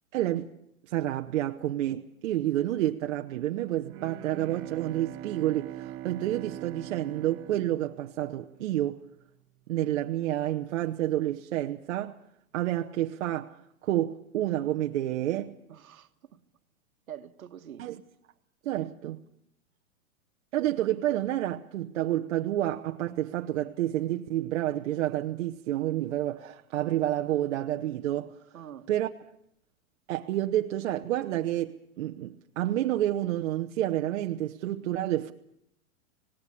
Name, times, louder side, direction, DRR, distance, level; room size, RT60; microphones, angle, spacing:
voice 1, 0.1-0.5 0.9-9.0 9.7-12.2 12.5-13.6 13.8-15.6 17.8-18.0 18.6-19.2 20.5-28.3 28.9-29.1 30.1-35.3, right 13 dB, 55° right, 1.1 m, -29 dB
Bowed string instrument, 3.8-8.7, right 14 dB, 30° right, 1.2 m, -42 dB
voice 2, 15.7-16.4 17.1-17.9 18.8-18.9 28.5-28.9, right 9 dB, 75° right, 1.6 m, -46 dB
26.5 x 19.0 x 7.1 m
hypercardioid pair, 125°, 42 cm